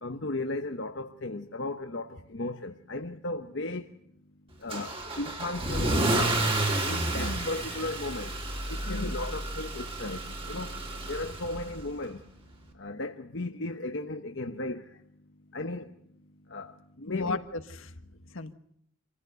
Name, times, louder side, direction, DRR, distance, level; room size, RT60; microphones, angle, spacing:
voice 1, 0.0-3.9 4.6-6.4 6.8-8.3 8.7-10.2 10.5-10.7 11.1-12.2 12.8-14.8 15.5-15.9 16.5-17.4, left 2 dB, 55° left, 1.0 m, -35 dB
Car / Engine starting / Accelerating revving vroom, 4.7-11.8, right 2 dB, 25° right, 3.2 m, -31 dB
voice 2, 7.1-7.5 8.8-9.1 17.1-17.9 18.3-18.5, left 3 dB, 75° left, 1.5 m, -35 dB
26.5 x 15.5 x 8.2 m
head